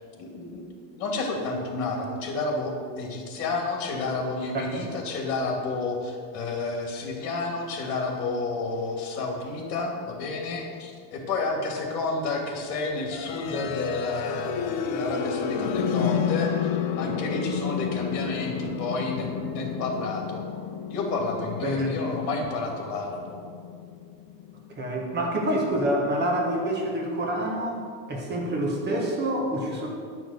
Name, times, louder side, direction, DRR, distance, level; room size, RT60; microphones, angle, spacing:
voice 1, 0.2-0.6 0.9-16.7 17.0-20.4 20.9-23.4, left 3 dB, 65° left, 1 dB, 2.9 m, -30 dB
voice 2, 4.5-4.9 21.6-22.0 24.8-29.9, right 1 dB, 20° right, 0 dB, 1.3 m, -27 dB
sound 1, 13.1-25.0, left 7 dB, 35° left, 0.6 m, -31 dB
11.5 x 6.2 x 6.7 m, 2.1 s
supercardioid pair, 155°, 49 cm